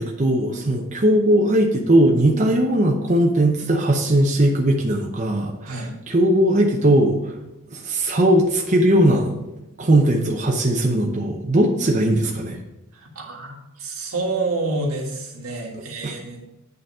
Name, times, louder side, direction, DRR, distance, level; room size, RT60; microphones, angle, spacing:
voice 1, 0.0-7.3 7.7-9.3 9.8-12.6 16.0-16.1, right 1 dB, 35° right, 0 dB, 0.7 m, -19 dB
voice 2, 12.9-16.4, right 3 dB, 80° right, 0 dB, 1.7 m, -28 dB
8.9 x 4.0 x 5.5 m, 0.96 s
head